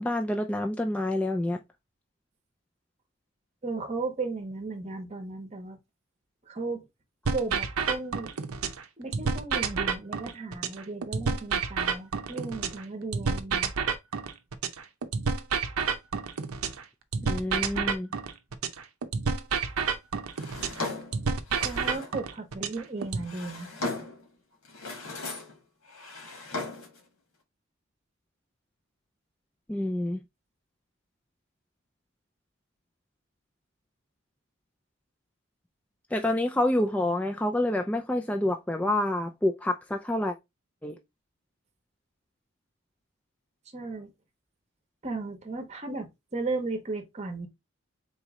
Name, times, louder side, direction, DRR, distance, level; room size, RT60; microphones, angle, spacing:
voice 1, 0.0-1.6 17.2-18.1 29.7-30.2 36.1-40.4 40.8-41.0, left 1 dB, 5° left, 0.3 m, -27 dB
voice 2, 3.6-5.8 6.5-6.9 7.3-8.3 9.0-13.7 21.6-23.7 43.7-44.1 45.0-47.5, right 3 dB, 30° right, 0.8 m, -35 dB
sound 1, 7.2-8.8 9.1-12.8 13.1-16.8 17.1-20.8 21.1-23.2, right 5 dB, 90° right, 0.6 m, -29 dB
Drawer open or close, 20.4-22.2 23.0-24.3 24.7-25.6 25.9-27.0, left 2 dB, 80° left, 1.9 m, -37 dB
4.0 x 3.0 x 3.5 m
head